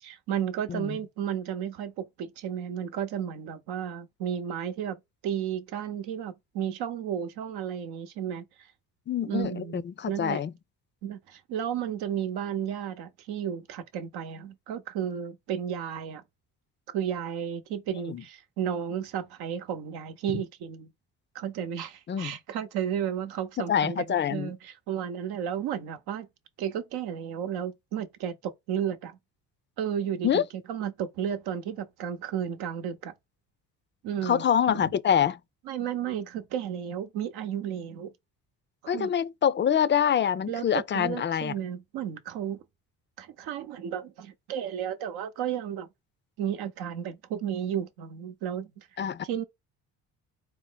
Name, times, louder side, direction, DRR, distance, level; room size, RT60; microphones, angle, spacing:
voice 1, 0.0-8.4 9.3-10.4 11.0-16.2 16.9-20.9 21.3-26.3 26.6-29.2 29.8-30.4 30.7-33.1 34.0-34.4 34.7-34.9 35.7-38.1 38.8-39.1 40.5-42.6 43.2-45.9 46.4-48.9 49.2-49.4, right 9 dB, 80° right, 0.8 m, -33 dB
voice 2, 9.1-10.5 18.1-18.2 20.3-20.4 22.1-22.4 23.7-24.5 30.2-30.4 34.2-35.4 38.9-41.5 49.0-49.4, left 8 dB, 30° left, 0.4 m, -26 dB
4.4 x 2.0 x 3.8 m
supercardioid pair, 65°, 38 cm